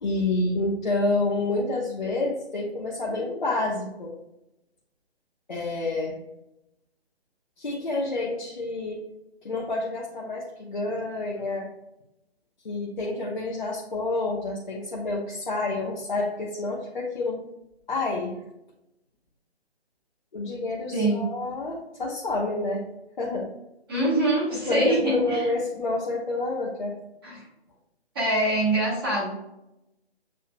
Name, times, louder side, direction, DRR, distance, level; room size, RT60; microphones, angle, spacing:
voice 1, 0.0-4.1 5.5-6.1 7.6-9.0 9.4-11.7 12.6-17.4 17.9-18.3 20.3-22.8 23.2-23.5 24.5-27.0, left 2 dB, 45° left, -3 dB, 0.9 m, -28 dB
voice 2, 20.9-21.3 23.9-25.5 27.2-27.4 28.1-29.3, right 1 dB, 20° right, -6 dB, 1.2 m, -24 dB
7.6 x 2.7 x 2.2 m, 0.88 s
figure-of-eight pair, 145°, 32 cm